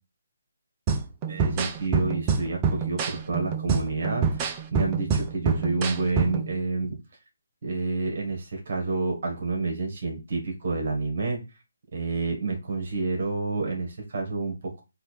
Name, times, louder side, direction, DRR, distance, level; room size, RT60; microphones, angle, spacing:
sound 1, 0.9-6.5, right 6 dB, 25° right, 0.6 m, -27 dB
voice 1, 1.3-7.0 7.6-11.4 11.9-14.8, right 3 dB, 55° right, 2 dB, 1.7 m, -29 dB
4.4 x 2.7 x 4.3 m, 0.26 s
figure-of-eight pair, 150°, 0 cm